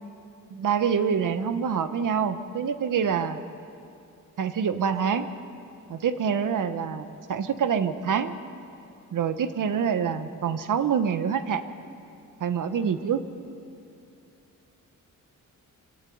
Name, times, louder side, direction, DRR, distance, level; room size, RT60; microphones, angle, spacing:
voice 1, 0.5-3.4 4.4-5.3 5.9-8.4 9.1-11.6 12.4-13.2, right 7 dB, 70° right, 10 dB, 1.3 m, -26 dB
24.0 x 16.5 x 9.5 m, 2.7 s
wide cardioid pair, 125°, 33 cm